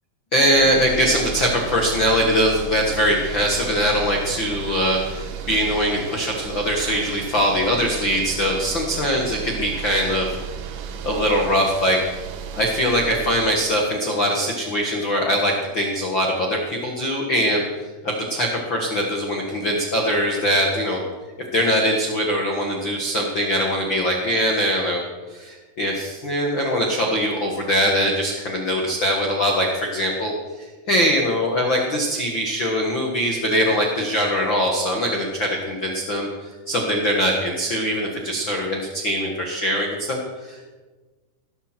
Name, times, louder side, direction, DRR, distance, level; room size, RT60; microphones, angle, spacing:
voice 1, 0.3-10.3 11.0-12.0 12.5-17.6 18.0-21.0 21.5-25.0 25.3-30.3 30.9-40.6, equal, 55° left, 0 dB, 1.3 m, -22 dB
sound 1, 0.6-13.6, right 7 dB, 85° right, 3.4 m, -34 dB
18.0 x 13.5 x 4.5 m, 1.3 s
omnidirectional pair, 4.9 m